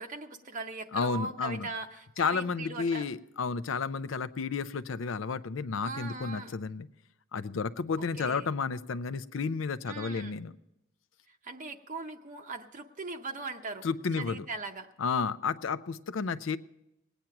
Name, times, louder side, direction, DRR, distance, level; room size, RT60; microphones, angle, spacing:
voice 1, 0.0-3.1 5.8-6.5 8.0-8.5 9.9-10.4 11.3-13.9 14.2-14.9, right 3 dB, 40° right, 3 dB, 0.7 m, -40 dB
voice 2, 0.9-1.7 2.2-6.9 7.3-10.5 13.8-14.5 15.0-16.6, left 5 dB, 75° left, 15 dB, 0.5 m, -32 dB
19.0 x 9.1 x 5.9 m, 0.87 s
head